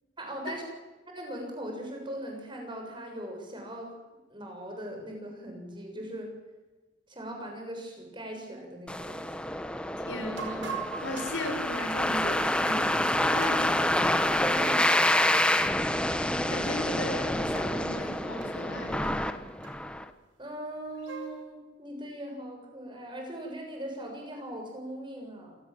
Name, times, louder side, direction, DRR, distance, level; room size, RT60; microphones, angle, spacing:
voice 1, 0.2-0.7 1.1-3.9 4.3-6.3 7.1-9.5 13.3-13.5 13.8-15.3 20.4-25.6, right 1 dB, 25° right, 2 dB, 7.0 m, -40 dB
sound 1, 8.9-20.0, left 1 dB, 5° left, 1.2 m, -27 dB
voice 2, 10.1-10.7 11.0-13.7 16.2-19.2, left 1 dB, 80° left, 5 dB, 5.6 m, -37 dB
sound 2, 10.4-12.9 13.4-14.1 14.6-14.9 15.3-15.6 16.5-16.7 16.9-17.0 17.6-17.8 18.4-18.5 19.0-19.1 19.6-20.1 20.7-21.4, right 5 dB, 85° right, 5.2 m, -42 dB
28.0 x 17.5 x 8.8 m, 1.2 s
head